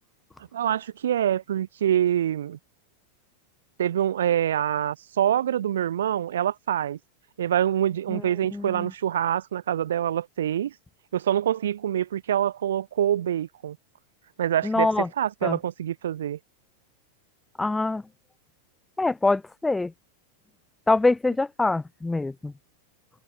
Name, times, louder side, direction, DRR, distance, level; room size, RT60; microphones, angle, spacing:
voice 1, 0.5-2.6 3.8-7.0 7.4-10.7 11.1-13.8 14.4-16.4, right 10 dB, 60° right, 0.8 m, -25 dB
voice 2, 8.5-8.9 14.6-15.1 15.4-15.6 17.6-18.0 19.0-19.9 20.9-22.5, left 2 dB, 10° left, 0.6 m, -24 dB
figure-of-eight pair, 90°, 0 cm